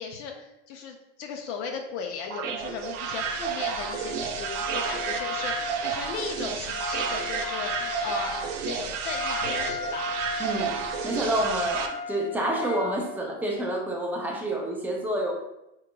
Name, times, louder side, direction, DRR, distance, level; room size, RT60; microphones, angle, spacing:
voice 1, 0.0-10.1, left 6 dB, 70° left, 3 dB, 0.6 m, -37 dB
sound 1, 2.3-11.9, right 6 dB, 80° right, 0.6 m, -31 dB
Wind instrument woodwind instrument, 3.0-13.0, left 5 dB, 50° left, 0.9 m, -36 dB
voice 2, 10.4-10.8 11.0-15.3, right 1 dB, 5° right, -1 dB, 0.3 m, -28 dB
4.7 x 3.0 x 2.2 m, 0.87 s
supercardioid pair, 135°, 36 cm